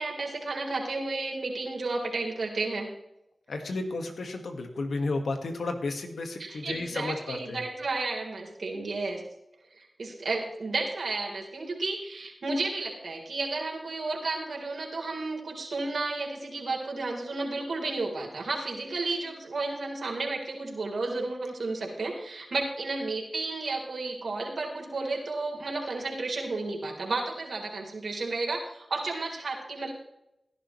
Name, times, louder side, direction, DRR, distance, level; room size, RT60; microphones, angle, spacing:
voice 1, 0.0-2.9 6.4-9.2 9.7-29.9, right 3 dB, 80° right, 0 dB, 3.7 m, -32 dB
voice 2, 3.5-7.6, left 3 dB, 85° left, 5 dB, 1.7 m, -32 dB
17.0 x 11.0 x 3.2 m, 0.84 s
cardioid pair, 45°, 0 cm